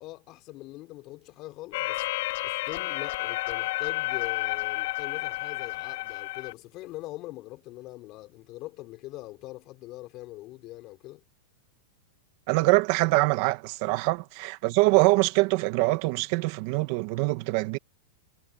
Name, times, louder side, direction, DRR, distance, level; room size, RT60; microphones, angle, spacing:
voice 1, 0.0-2.0 2.4-11.2 13.9-14.0, left 18 dB, 35° left, 4.9 m, -42 dB
sound 1, 1.7-6.5, left 19 dB, 55° left, 3.4 m, -31 dB
voice 2, 12.5-17.8, right 23 dB, 45° right, 1.8 m, -24 dB
supercardioid pair, 155°, 0 cm